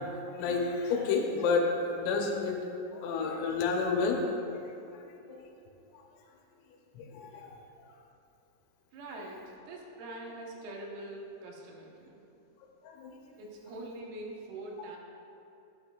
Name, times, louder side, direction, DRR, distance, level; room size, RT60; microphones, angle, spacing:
voice 1, 0.0-2.6 2.9-4.6 5.1-5.4 6.9-7.5 12.8-13.2, left 4 dB, 80° left, 1 dB, 3.5 m, -30 dB
voice 2, 8.9-12.2 13.4-15.0, right 1 dB, 90° right, -1 dB, 3.9 m, -43 dB
11.0 x 11.0 x 2.4 m, 2.7 s
omnidirectional pair, 5.9 m